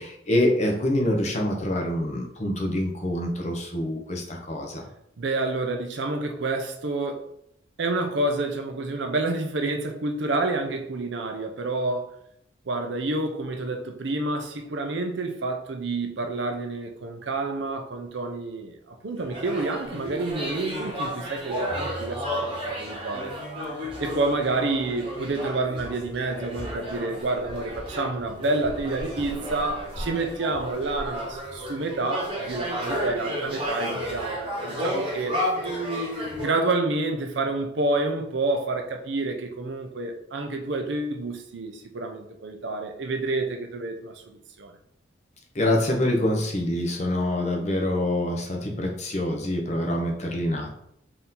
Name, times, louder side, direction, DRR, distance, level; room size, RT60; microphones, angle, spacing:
voice 1, 0.0-4.8 45.5-50.8, left 1 dB, 35° left, 1 dB, 0.7 m, -26 dB
voice 2, 5.2-7.3 7.8-12.1 12.7-23.3 24.0-35.4 36.4-44.7, right 2 dB, 70° right, 5 dB, 0.6 m, -28 dB
sound 1, 19.2-36.5, equal, 25° right, 1.1 m, -32 dB
4.3 x 2.7 x 3.7 m, 0.73 s
head